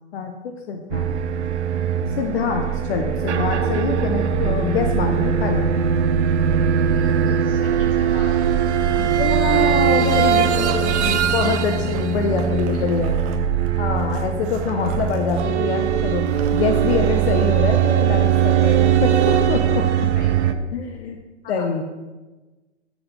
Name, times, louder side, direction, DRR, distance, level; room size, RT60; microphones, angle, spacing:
voice 1, 0.7-1.2 2.1-5.7 9.0-13.1 13.8-16.2 16.5-19.8 20.7-21.2 21.5-21.8, left 5 dB, 60° left, 4 dB, 0.9 m, -25 dB
sound 1, 0.9-20.5, right 8 dB, 75° right, 0.7 m, -20 dB
voice 2, 6.9-8.4 9.5-10.5 11.7-11.8 12.4-13.0 19.3-19.5 20.1-20.6 21.5-21.7, left 4 dB, 25° left, 0 dB, 1.7 m, -38 dB
sound 2, 9.2-11.1 11.8-15.5 15.8-15.9 16.2-17.0 18.5-18.6, right 8 dB, 20° right, 0.5 m, -39 dB
7.4 x 6.2 x 5.2 m, 1.2 s
hypercardioid pair, 135°, 35 cm